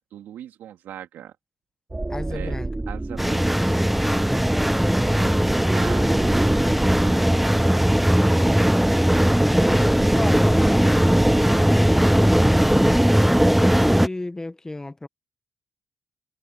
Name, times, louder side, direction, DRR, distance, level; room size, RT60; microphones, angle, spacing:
voice 1, 0.0-1.3 2.3-2.6 2.9-4.4 4.7-7.8, right 11 dB, 85° right, 2.5 m, -42 dB
sound 1, 1.9-13.0, right 2 dB, 20° right, 3.3 m, -31 dB
voice 2, 2.1-2.9 9.2-11.0 11.3-12.4 13.6-15.1, left 2 dB, 15° left, 1.3 m, -32 dB
sound 2, 3.2-14.1, equal, 5° right, 0.9 m, -19 dB
cardioid pair, 80°, 3 cm